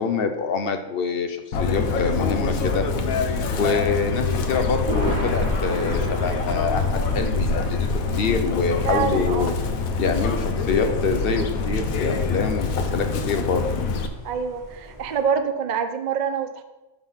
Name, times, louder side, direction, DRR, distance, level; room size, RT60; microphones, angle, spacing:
voice 1, 0.0-2.9 3.5-7.9 8.1-9.5 10.0-13.8, left 5 dB, 50° left, 7 dB, 0.9 m, -26 dB
Chirp tweet, 1.5-14.1, left 4 dB, 85° left, 1.2 m, -25 dB
Thunder, 3.8-15.2, right 1 dB, 35° right, 3.1 m, -36 dB
voice 2, 8.8-9.6 14.2-16.6, right 6 dB, 50° right, 8 dB, 0.5 m, -26 dB
11.0 x 3.8 x 5.6 m, 1.0 s
omnidirectional pair, 1.4 m